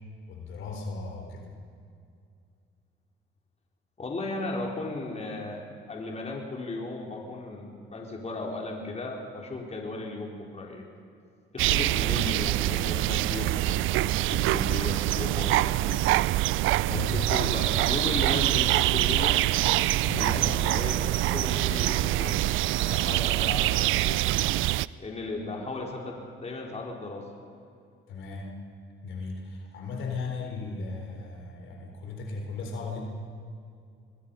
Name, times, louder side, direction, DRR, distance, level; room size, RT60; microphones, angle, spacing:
voice 1, 0.3-1.5 16.9-17.1 20.0-20.4 28.1-28.5 29.0-33.0, left 4 dB, 75° left, 2 dB, 4.1 m, -36 dB
voice 2, 4.0-10.9 11.5-16.0 16.9-19.4 20.2-22.4 22.8-24.2 25.0-27.2, left 2 dB, 35° left, 0 dB, 4.3 m, -36 dB
sound 1, 11.6-24.9, right 16 dB, 85° right, 0.4 m, -25 dB
25.5 x 20.5 x 5.6 m, 2.4 s
cardioid pair, 90°, 20 cm